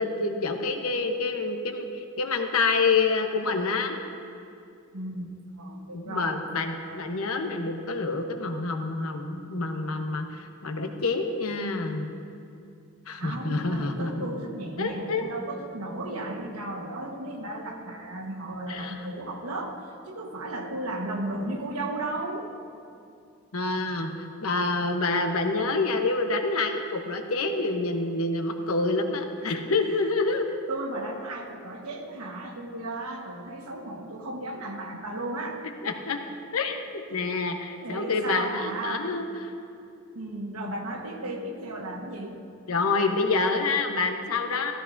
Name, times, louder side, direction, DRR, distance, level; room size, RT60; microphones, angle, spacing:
voice 1, 0.0-4.0 5.9-12.1 13.1-14.3 14.8-15.2 18.7-18.9 23.5-30.5 35.8-36.2 36.5-39.5 42.7-44.7, left 3 dB, 80° left, 4 dB, 1.0 m, -27 dB
voice 2, 4.9-5.3 5.6-6.3 6.9-7.0 13.2-19.8 20.0-22.5 29.4-29.5 29.8-30.1 30.7-35.6 36.9-37.0 37.8-39.0 40.1-42.4, right 1 dB, 85° right, 2 dB, 1.3 m, -35 dB
14.5 x 13.5 x 2.7 m, 2.5 s
head